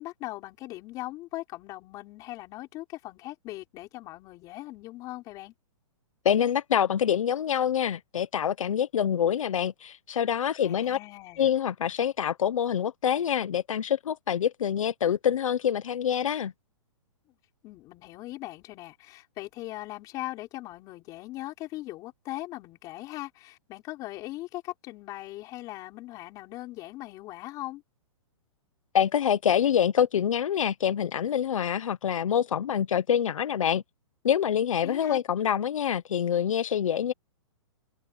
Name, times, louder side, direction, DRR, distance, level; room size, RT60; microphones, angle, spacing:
voice 1, 0.0-5.5 10.6-11.5 17.6-27.8 34.8-35.2, left 17 dB, 20° left, 5.4 m, -40 dB
voice 2, 6.2-11.0 11.4-16.5 28.9-33.8 34.2-37.1, left 9 dB, 70° left, 1.1 m, -26 dB
open air
hypercardioid pair, 170°, 17 cm